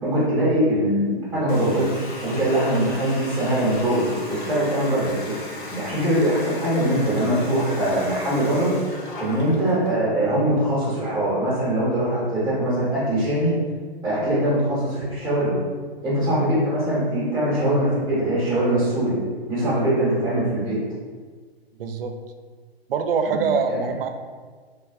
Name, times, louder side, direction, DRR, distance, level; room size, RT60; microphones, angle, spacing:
voice 1, 0.0-5.3 5.7-8.7 9.2-13.5 14.0-15.6 16.0-19.1 19.5-20.8 23.3-23.4 23.7-23.8, right 1 dB, ahead, -12 dB, 0.8 m, -22 dB
Water tap faucet, 1.5-10.0, left 2 dB, 50° left, 0.8 m, -35 dB
voice 2, 21.8-22.1 22.9-24.1, right 5 dB, 65° right, 6 dB, 0.4 m, -24 dB
3.2 x 2.3 x 2.4 m, 1.5 s
figure-of-eight pair, 125°, 31 cm